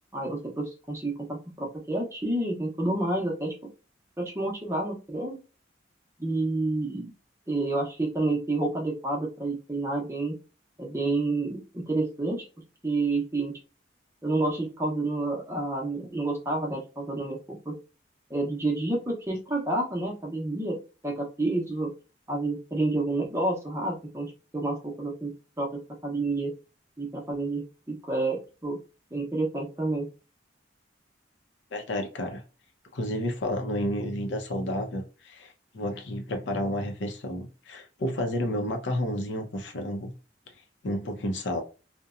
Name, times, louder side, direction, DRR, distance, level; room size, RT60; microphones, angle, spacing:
voice 1, 0.1-3.7 4.2-5.4 6.2-7.1 7.5-10.4 10.8-12.4 12.8-13.5 14.2-17.7 18.3-20.8 21.0-21.9 22.3-25.3 25.6-26.5 27.0-28.8 29.1-30.1, right 2 dB, 15° right, -1 dB, 0.6 m, -29 dB
voice 2, 31.7-32.4 32.9-40.1 40.8-41.6, left 1 dB, 70° left, 4 dB, 0.6 m, -31 dB
2.7 x 2.1 x 2.4 m, 0.32 s
head